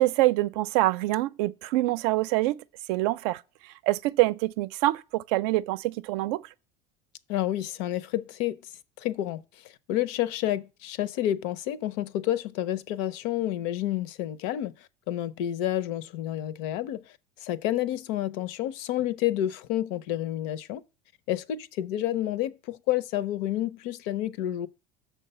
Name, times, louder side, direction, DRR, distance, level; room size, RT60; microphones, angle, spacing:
voice 1, 0.0-2.6 2.9-3.4 3.8-6.4, right 18 dB, 75° right, 0.5 m, -25 dB
voice 2, 7.3-8.6 9.0-20.8 21.3-24.7, left 13 dB, 70° left, 0.6 m, -30 dB
6.5 x 4.5 x 6.7 m
supercardioid pair, 125°, 19 cm